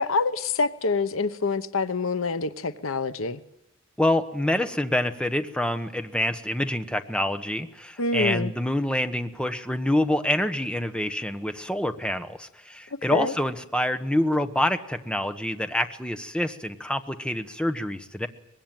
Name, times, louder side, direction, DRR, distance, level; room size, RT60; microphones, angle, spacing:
voice 1, 0.0-3.4 8.0-8.5 13.1-13.3, left 3 dB, 80° left, 1.0 m, -26 dB
voice 2, 4.0-18.3, left 1 dB, 5° left, 1.3 m, -26 dB
24.0 x 21.0 x 9.1 m
head